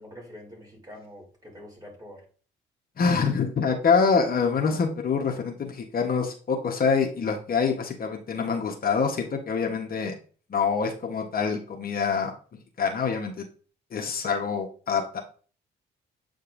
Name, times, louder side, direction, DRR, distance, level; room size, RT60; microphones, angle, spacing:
voice 1, 0.0-2.2, left 1 dB, 20° right, -1 dB, 3.1 m, -45 dB
voice 2, 3.0-10.2 10.5-12.3 12.8-13.4 13.9-15.2, left 5 dB, 50° left, 2 dB, 1.1 m, -25 dB
8.0 x 5.2 x 2.6 m, 0.41 s
cardioid pair, 90°, 20 cm